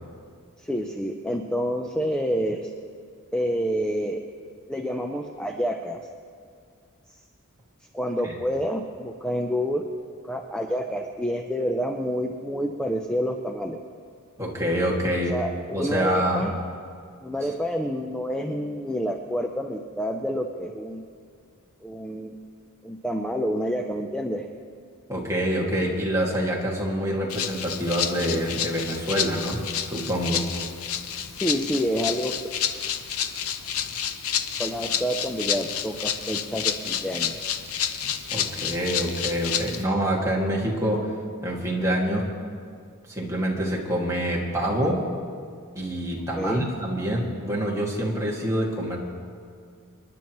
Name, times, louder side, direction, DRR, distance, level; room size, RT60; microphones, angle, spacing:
voice 1, 0.6-2.7 3.3-4.2 4.7-6.1 7.9-9.9 10.2-13.8 15.3-16.6 17.2-21.0 21.8-22.3 22.8-24.5 31.4-32.4 34.6-37.3 46.4-46.7, equal, 5° left, 3 dB, 0.6 m, -28 dB
voice 2, 14.4-15.3 15.7-16.4 25.1-30.4 38.3-41.1 41.4-42.3 43.1-45.0 45.8-49.0, equal, 15° right, -3 dB, 2.1 m, -26 dB
Rattle (instrument), 27.3-39.8, left 8 dB, 75° left, 0.7 m, -30 dB
28.0 x 10.5 x 3.1 m, 2.2 s
head